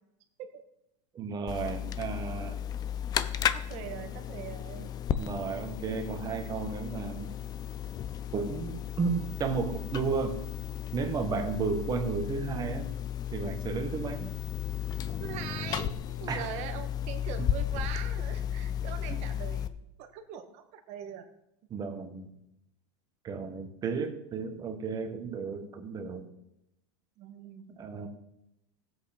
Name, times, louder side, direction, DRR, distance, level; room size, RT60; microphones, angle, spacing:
voice 1, 1.1-2.6 5.2-7.3 8.3-10.4 10.9-12.9 13.3-14.3 16.3-16.5 17.4-17.5 19.1-19.2 21.7-22.3 23.2-26.3 27.7-28.1, right 5 dB, 25° right, 6 dB, 1.5 m, -33 dB
sound 1, 1.5-19.7, left 9 dB, 25° left, 0.5 m, -34 dB
voice 2, 3.5-4.9 15.1-15.9 16.2-19.7 20.0-21.3 27.2-27.7, right 9 dB, 45° right, 6 dB, 1.7 m, -42 dB
17.0 x 7.9 x 4.4 m, 0.82 s
supercardioid pair, 145°, 16 cm